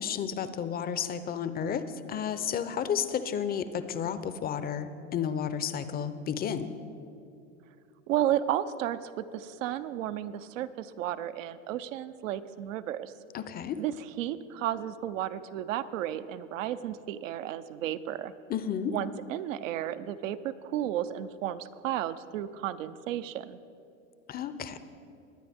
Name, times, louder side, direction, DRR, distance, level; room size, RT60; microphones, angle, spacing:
voice 1, 0.0-1.8 2.1-6.7 13.3-13.8 18.5-18.9 24.3-24.8, left 8 dB, 25° left, 12 dB, 0.6 m, -32 dB
voice 2, 8.1-13.1 13.8-18.3 18.9-23.6, right 11 dB, 70° right, 13 dB, 0.7 m, -33 dB
22.0 x 9.2 x 3.5 m, 2.6 s
hypercardioid pair, 100°, 40 cm